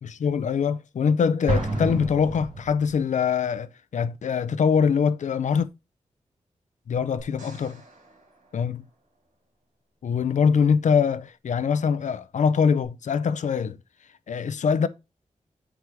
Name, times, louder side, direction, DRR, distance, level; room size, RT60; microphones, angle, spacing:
voice 1, 0.0-5.7 6.9-7.8 8.5-8.9 10.0-13.8 14.3-14.9, left 6 dB, 70° left, 0.5 m, -23 dB
Explosion, 1.5-3.2, right 1 dB, 75° right, 2.0 m, -28 dB
sound 1, 7.2-9.5 12.8-12.9, right 2 dB, 90° right, 4.2 m, -51 dB
8.1 x 4.7 x 3.4 m
wide cardioid pair, 120°, 13 cm